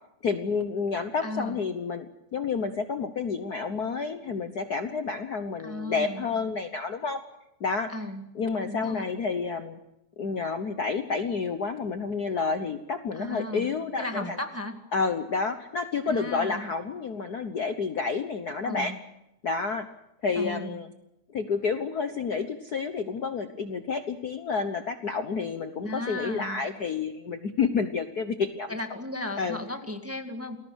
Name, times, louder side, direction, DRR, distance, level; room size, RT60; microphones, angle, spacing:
voice 1, 0.2-2.1 2.3-7.2 7.6-7.9 8.3-9.8 10.2-14.4 14.9-18.9 19.4-19.9 20.2-20.9 21.3-28.7 29.4-29.6, left 5 dB, 75° left, 8 dB, 0.8 m, -29 dB
voice 2, 1.2-1.6 5.6-6.3 7.9-8.3 8.6-9.0 13.1-13.7 14.0-14.8 16.1-16.7 18.6-19.0 20.3-20.8 25.8-26.6 28.7-30.6, left 1 dB, 5° right, 5 dB, 1.3 m, -35 dB
28.5 x 20.5 x 6.4 m, 0.87 s
omnidirectional pair, 3.4 m